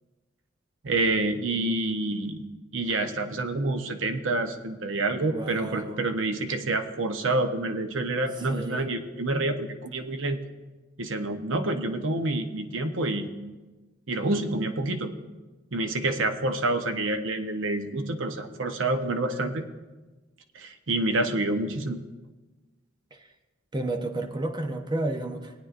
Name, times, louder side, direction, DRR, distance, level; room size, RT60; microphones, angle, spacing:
voice 1, 0.8-2.4 2.7-10.4 11.0-13.3 14.1-15.1 15.7-19.6 20.5-22.0, right 2 dB, 75° right, 7 dB, 0.9 m, -28 dB
voice 2, 5.3-6.0 8.4-8.8 23.1-23.3 23.7-25.5, right 2 dB, 25° right, 6 dB, 0.8 m, -32 dB
19.0 x 9.4 x 2.5 m, 1.2 s
head